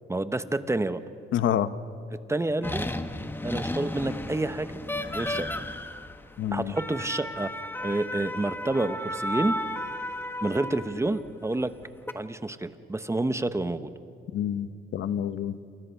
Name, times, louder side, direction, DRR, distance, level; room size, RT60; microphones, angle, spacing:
voice 1, 0.1-1.0 2.3-2.9 3.4-4.7 5.1-5.5 6.5-7.6 7.8-9.6 10.4-11.7 12.1-13.9, right 2 dB, 15° right, 11 dB, 1.1 m, -28 dB
voice 2, 1.3-1.7 6.4-6.7 14.3-15.6, left 10 dB, 75° left, 13 dB, 1.0 m, -28 dB
sound 1, 2.6-11.1 11.8-12.1, left 1 dB, 10° left, 1.3 m, -34 dB
28.0 x 28.0 x 5.8 m, 2.5 s
cardioid pair, 90°, 20 cm